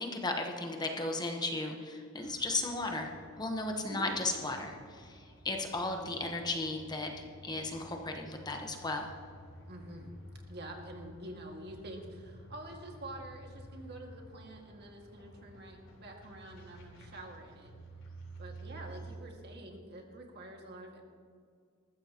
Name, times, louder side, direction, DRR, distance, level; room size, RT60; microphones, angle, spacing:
voice 1, 0.0-3.1 3.4-7.1 7.4-9.1, left 2 dB, 20° left, 3 dB, 1.1 m, -35 dB
sound 1, 2.1-19.2, right 1 dB, 65° left, 4.0 m, -52 dB
voice 2, 9.7-10.1 10.5-17.7 18.4-21.0, right 1 dB, 50° right, 1 dB, 2.0 m, -47 dB
20.0 x 14.5 x 3.0 m, 2.2 s
head